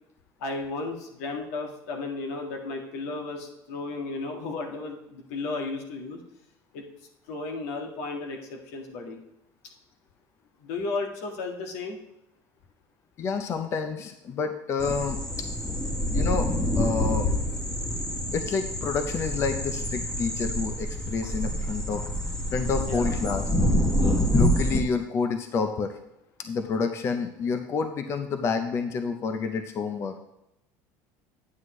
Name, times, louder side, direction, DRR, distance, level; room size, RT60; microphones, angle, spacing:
voice 1, 0.4-6.2 6.7-6.8 7.3-9.2 10.6-12.0 22.7-23.2 24.0-24.2, left 3 dB, 90° left, 2 dB, 1.7 m, -34 dB
voice 2, 13.2-15.2 16.1-16.5 16.8-17.3 18.3-22.0 22.5-23.5 24.3-26.0 26.4-30.1, left 5 dB, 35° left, 7 dB, 0.6 m, -29 dB
sound 1, 14.8-24.8, equal, 10° left, 0.9 m, -27 dB
9.4 x 7.8 x 3.2 m, 0.85 s
cardioid pair, 140°, 8 cm